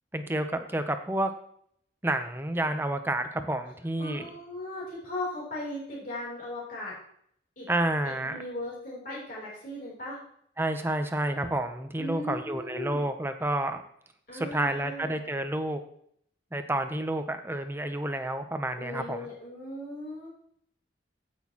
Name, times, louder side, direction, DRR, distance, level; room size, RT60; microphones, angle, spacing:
voice 1, 0.1-1.3 2.0-4.3 7.7-8.4 10.6-13.8 14.3-15.8 16.5-19.3, right 1 dB, 10° right, 8 dB, 0.6 m, -30 dB
voice 2, 4.0-7.0 7.6-7.7 8.0-10.2 12.0-13.1 14.3-15.2 18.8-20.3, left 1 dB, 45° left, -5 dB, 3.4 m, -37 dB
15.5 x 6.2 x 3.0 m, 0.67 s
head